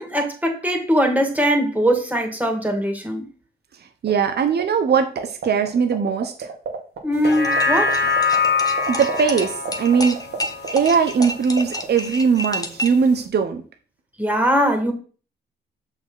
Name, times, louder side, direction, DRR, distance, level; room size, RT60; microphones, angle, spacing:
voice 1, 0.0-3.3 7.0-8.0 14.2-14.9, equal, 10° right, 2.3 m, -21 dB
voice 2, 4.0-6.5 8.9-10.2 10.7-13.6, right 6 dB, 55° right, 1.0 m, -20 dB
sound 1, 4.1-4.6 4.9-7.0 7.2-7.3 7.5-11.2 11.5-11.8, right 8 dB, 75° right, 2.0 m, -29 dB
sound 2, 7.1-11.7 12.1-12.2, left 4 dB, 55° left, 1.7 m, -24 dB
sound 3, 7.3-13.1, left 1 dB, 20° left, 1.3 m, -31 dB
6.5 x 5.5 x 4.0 m
cardioid pair, 65°, 20 cm